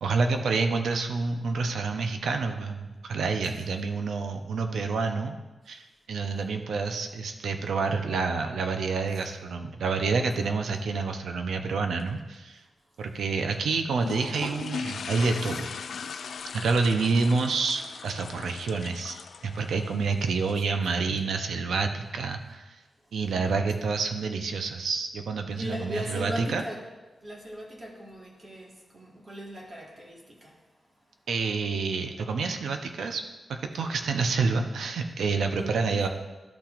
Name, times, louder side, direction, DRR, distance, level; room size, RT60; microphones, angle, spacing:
voice 1, 0.0-5.4 5.7-12.6 13.0-15.7 16.5-19.2 19.4-22.8 23.1-26.6 31.3-33.2 33.5-36.1, right 4 dB, 85° right, 6 dB, 0.7 m, -28 dB
sound 1, 14.0-20.6, left 6 dB, 70° left, 0.3 m, -39 dB
voice 2, 16.0-16.6 21.1-21.2 23.7-23.9 24.2-24.4 25.6-26.8 27.2-30.6 35.6-36.0, equal, 35° right, -1 dB, 1.6 m, -38 dB
12.0 x 5.8 x 2.5 m, 1.2 s
wide cardioid pair, 105°, 0 cm